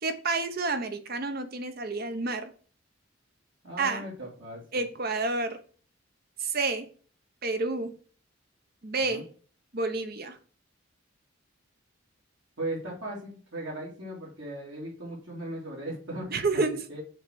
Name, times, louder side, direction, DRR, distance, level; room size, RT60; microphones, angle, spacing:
voice 1, 0.0-2.5 3.8-4.0 4.7-5.6 6.4-6.9 7.4-7.9 8.8-9.3 9.7-10.4 16.3-16.8, right 3 dB, 50° right, 9 dB, 1.0 m, -29 dB
voice 2, 3.6-4.6 9.0-9.2 12.6-16.6 16.9-17.0, right 1 dB, 65° right, -5 dB, 2.7 m, -37 dB
6.4 x 4.4 x 6.3 m, 0.42 s
head